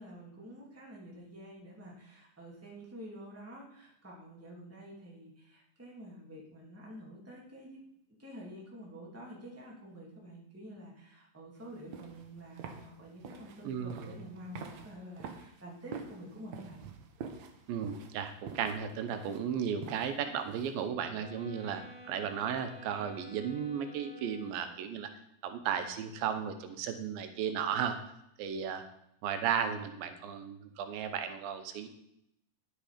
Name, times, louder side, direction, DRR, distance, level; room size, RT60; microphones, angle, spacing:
voice 1, 0.0-7.8 8.2-16.8, equal, 5° right, -3 dB, 2.2 m, -48 dB
sound 1, 11.6-20.9, right 6 dB, 70° right, 1.9 m, -48 dB
voice 2, 13.6-14.1 17.7-25.1 25.4-28.0 28.4-28.8 29.2-31.9, right 8 dB, 90° right, 8 dB, 2.7 m, -35 dB
sound 2, 21.1-25.0, equal, 80° left, 3.4 m, -51 dB
10.5 x 8.1 x 5.1 m, 0.76 s
omnidirectional pair, 4.1 m